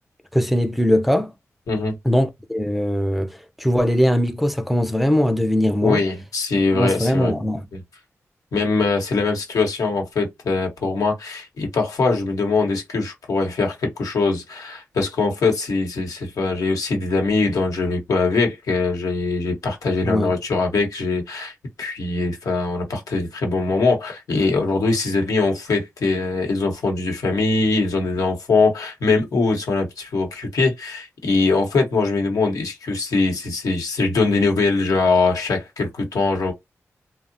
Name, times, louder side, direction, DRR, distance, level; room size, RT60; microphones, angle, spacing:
voice 1, 0.3-1.3 2.0-6.0 6.7-7.6 20.0-20.3, equal, ahead, 0.4 m, -20 dB
voice 2, 5.8-7.3 7.7-7.8 8.5-36.5, left 3 dB, 85° left, 0.9 m, -22 dB
2.7 x 2.0 x 2.6 m
cardioid pair, 60°, 6 cm